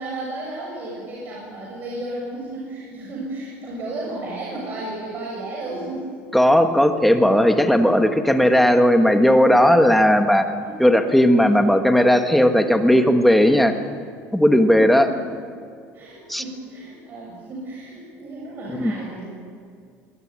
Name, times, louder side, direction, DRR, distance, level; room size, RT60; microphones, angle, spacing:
voice 1, 0.0-6.3 10.6-10.9 14.9-15.3 15.9-19.3, right 2 dB, 35° right, -3 dB, 7.2 m, -33 dB
voice 2, 6.3-10.5 10.8-13.7 14.3-15.1 16.3-16.4 18.8-18.9, equal, ahead, 5 dB, 1.5 m, -16 dB
22.0 x 20.5 x 9.6 m, 2.1 s
cardioid pair, 165°, 6 cm